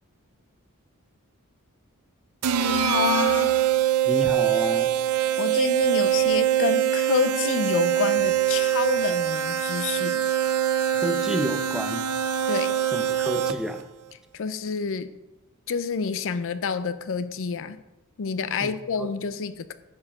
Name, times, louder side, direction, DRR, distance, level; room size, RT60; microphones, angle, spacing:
sound 1, 2.4-13.8, right 11 dB, 85° right, 0.5 m, -23 dB
voice 1, 2.6-3.5 5.4-10.2 12.5-12.8 14.3-15.1 15.7-17.8 18.2-19.7, left 6 dB, 60° left, 13 dB, 0.5 m, -28 dB
voice 2, 4.1-4.9 10.9-12.1 12.9-13.8 18.6-19.1, equal, 5° right, 6 dB, 0.6 m, -30 dB
9.6 x 4.5 x 6.0 m, 0.95 s
head